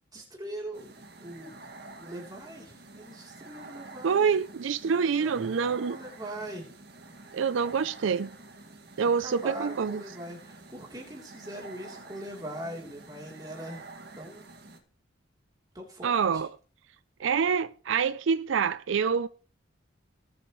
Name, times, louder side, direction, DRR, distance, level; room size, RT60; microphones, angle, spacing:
voice 1, 0.1-1.5 2.0-4.3 5.2-6.7 9.2-13.8 14.1-14.4 15.7-16.4, right 1 dB, 20° right, 3.3 m, -42 dB
sound 1, 0.7-14.8, right 3 dB, 50° right, 2.1 m, -48 dB
voice 2, 4.0-6.0 7.3-8.3 9.0-10.0 16.0-16.5 17.2-19.3, right 6 dB, 75° right, 0.4 m, -26 dB
19.5 x 8.1 x 3.1 m
head